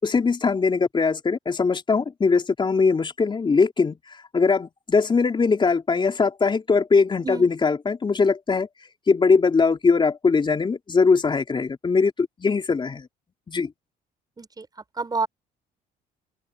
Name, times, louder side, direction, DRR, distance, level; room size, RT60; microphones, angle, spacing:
voice 1, 0.0-8.7 9.1-13.1 13.5-13.7, left 4 dB, 25° left, 4.2 m, -21 dB
voice 2, 7.2-7.5 14.4-14.7 15.0-15.3, right 4 dB, 20° right, 6.7 m, -28 dB
open air
cardioid pair, 105°, 18 cm